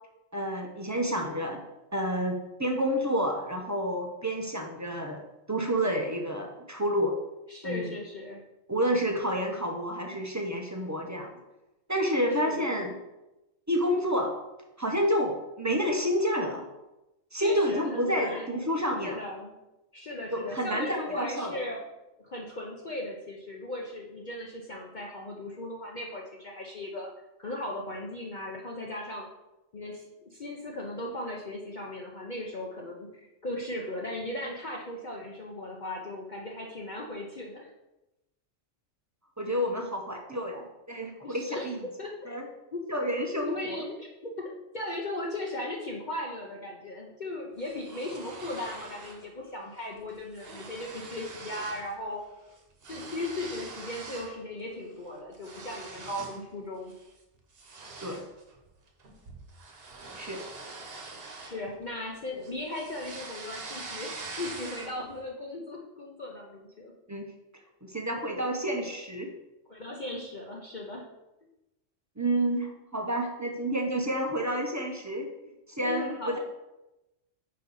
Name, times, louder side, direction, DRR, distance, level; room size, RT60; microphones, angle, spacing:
voice 1, 0.3-1.6 1.9-5.2 5.5-7.1 7.6-7.9 8.7-11.3 11.9-13.0 13.7-14.3 14.8-16.6 17.3-19.2 20.3-21.5 39.4-41.7 42.3-42.4 42.9-43.8 58.0-58.2 60.2-60.4 67.1-67.3 67.8-69.3 72.2-75.3 75.7-76.4, equal, 20° right, 2 dB, 0.4 m, -29 dB
voice 2, 7.5-8.4 12.3-12.6 17.4-18.6 19.0-19.6 19.9-21.8 22.2-27.1 27.4-29.3 29.7-37.7 41.2-41.7 42.0-42.4 42.7-42.8 43.4-44.5 44.7-52.2 52.9-56.9 61.4-66.9 69.7-71.1 75.8-76.4, left 1 dB, 45° left, -1 dB, 0.8 m, -37 dB
sound 1, 47.6-49.2 49.6-49.8 50.1-51.9 52.2-54.4 54.8-56.4 56.9-57.1 57.5-62.1 62.4-65.1, right 3 dB, 50° right, 1.1 m, -44 dB
5.2 x 4.4 x 5.3 m, 0.97 s
omnidirectional pair, 1.4 m